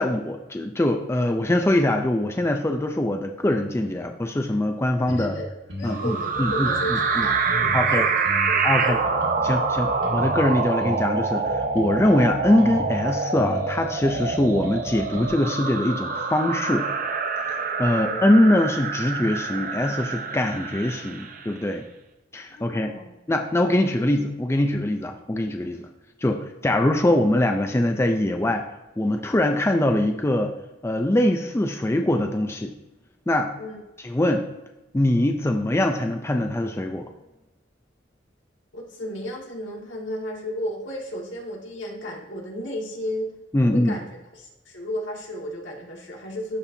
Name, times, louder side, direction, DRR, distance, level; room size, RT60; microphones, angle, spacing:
voice 1, 0.0-5.4 5.8-7.3 7.7-8.0 8.6-9.0 9.4-16.9 17.4-21.9 22.3-22.9 23.3-25.9 26.2-28.7 29.0-30.5 30.8-32.7 33.3-33.5 34.0-34.5 34.9-37.1 43.5-44.0, left 1 dB, 15° left, 4 dB, 0.4 m, -23 dB
sound 1, 5.1-5.3 5.7-7.9 8.2-10.5 10.8-13.0 13.3-15.3, equal, 65° right, 1.8 m, -35 dB
voice 2, 5.8-9.1 17.9-18.3 22.5-23.1 26.6-26.7 33.6-33.8 38.7-43.3 43.6-44.1 44.3-46.6, equal, 80° left, -2 dB, 2.0 m, -33 dB
sound 2, 5.9-21.5, right 4 dB, 45° right, 0.6 m, -26 dB
12.5 x 4.2 x 2.7 m, 1.0 s
head